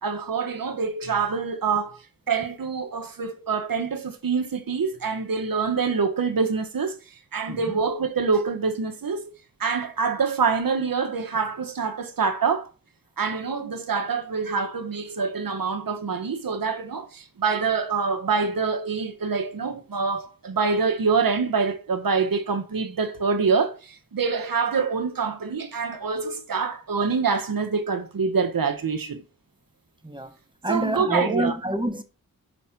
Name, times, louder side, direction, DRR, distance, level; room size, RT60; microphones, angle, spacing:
voice 1, 0.0-2.0 2.3-7.0 7.3-9.3 9.6-12.7 13.2-29.2 30.7-31.6, right 5 dB, 70° right, 1.3 m, -25 dB
voice 2, 7.5-7.8 30.0-30.3 30.6-32.0, right 1 dB, 15° right, 1.3 m, -27 dB
6.4 x 4.2 x 5.9 m
cardioid pair, 50°, 35 cm